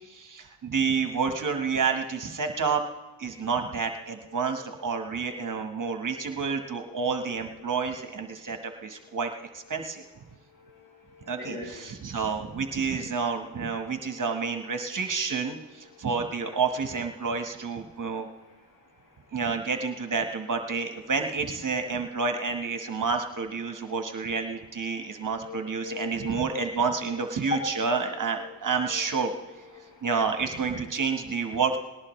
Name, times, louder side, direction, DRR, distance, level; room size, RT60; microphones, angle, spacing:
voice 1, 0.0-2.8 3.2-10.0 11.3-18.3 19.3-29.3 30.0-31.8, right 5 dB, 40° right, 5 dB, 1.3 m, -29 dB
voice 2, 5.8-6.2 6.8-6.9 9.0-9.1 10.6-11.9 25.4-26.5 27.5-28.5 28.9-29.4 29.7-30.1, left 4 dB, 40° left, -2 dB, 5.8 m, -40 dB
19.0 x 19.0 x 3.2 m, 1.2 s
cardioid pair, 105°, 46 cm